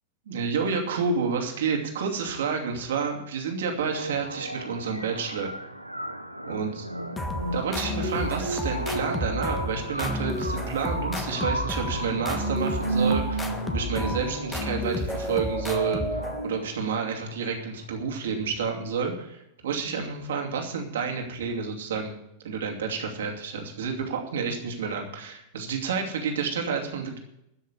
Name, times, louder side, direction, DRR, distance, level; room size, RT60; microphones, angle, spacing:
voice 1, 0.3-5.5 6.5-6.9 7.5-22.2 22.4-27.2, right 5 dB, 60° right, 2 dB, 2.7 m, -30 dB
sound 1, 3.8-17.8, right 2 dB, 90° right, 0.7 m, -33 dB
sound 2, 7.2-16.7, left 1 dB, 15° left, 1.5 m, -32 dB
sound 3, 10.0-18.3, right 2 dB, 10° right, 2.0 m, -45 dB
13.0 x 6.5 x 10.0 m, 0.81 s
figure-of-eight pair, 90°, 0 cm